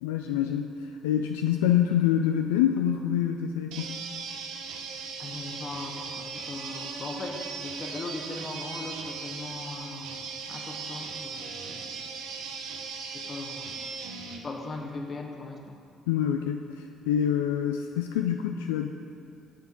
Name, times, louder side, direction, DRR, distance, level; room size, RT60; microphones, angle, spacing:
voice 1, 0.0-4.0 16.1-18.9, left 10 dB, 80° left, 4 dB, 0.3 m, -26 dB
sound 1, 3.7-14.4, right 5 dB, 70° right, 0.8 m, -38 dB
voice 2, 5.2-12.1 12.8-13.9 14.4-15.8, left 3 dB, 40° left, 2 dB, 1.3 m, -39 dB
9.2 x 7.5 x 4.5 m, 2.3 s
hypercardioid pair, 50°, 0 cm